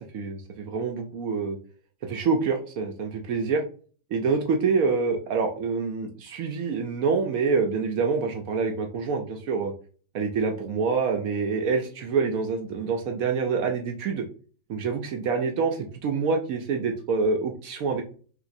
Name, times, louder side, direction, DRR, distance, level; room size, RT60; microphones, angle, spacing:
voice 1, 0.0-1.6 2.0-3.6 4.1-9.7 10.1-14.2 14.7-18.0, right 5 dB, 75° right, 3 dB, 0.8 m, -26 dB
3.4 x 2.9 x 2.5 m, 0.41 s
omnidirectional pair, 2.0 m